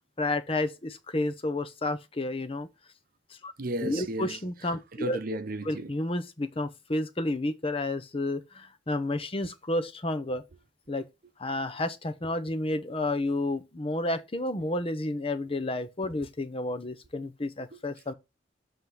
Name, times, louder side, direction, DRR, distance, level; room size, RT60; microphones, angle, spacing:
voice 1, 0.2-2.7 3.4-3.5 3.8-5.2 5.6-10.4 10.9-11.1 11.4-18.1, left 2 dB, 30° left, 0.8 m, -31 dB
voice 2, 3.6-4.4 4.9-5.9 17.7-17.8, right 2 dB, 55° right, 0.7 m, -34 dB
7.3 x 3.6 x 6.0 m
head